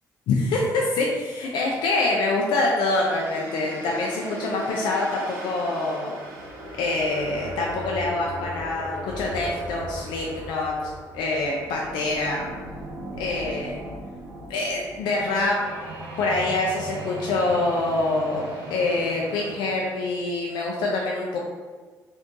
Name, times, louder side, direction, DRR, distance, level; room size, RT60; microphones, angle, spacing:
voice 1, 0.3-6.1 6.8-12.5 13.2-13.8 14.5-15.6 16.2-21.4, left 2 dB, 85° left, -2 dB, 0.4 m, -25 dB
sound 1, 3.0-19.9, right 1 dB, 90° right, 1.0 m, -38 dB
2.6 x 2.2 x 3.7 m, 1.4 s
cardioid pair, 70°, 8 cm